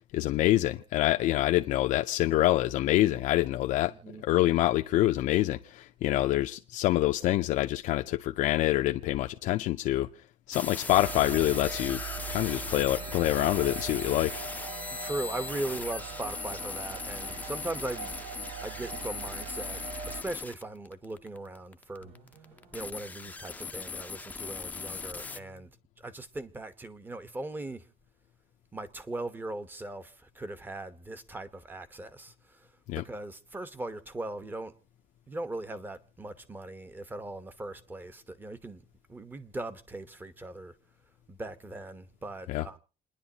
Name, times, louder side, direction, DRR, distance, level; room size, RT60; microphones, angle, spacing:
voice 1, 0.1-3.9 4.2-10.1 10.5-12.0 12.3-14.4 32.9-33.0 42.5-42.6, left 15 dB, 90° left, 0.6 m, -26 dB
voice 2, 3.9-4.2 14.9-18.1 18.6-22.1 22.7-25.7 26.0-27.9 28.7-32.7 32.9-34.7 35.3-38.8 39.1-40.8 41.3-42.8, right 2 dB, 15° right, 1.0 m, -39 dB
sound 1, 10.5-25.4, left 4 dB, 10° left, 0.6 m, -39 dB
sound 2, 10.9-20.2, right 6 dB, 50° right, 1.2 m, -41 dB
sound 3, 15.7-21.6 22.0-25.6, right 3 dB, 90° right, 6.1 m, -60 dB
29.0 x 10.5 x 2.8 m
cardioid pair, 160°, 13 cm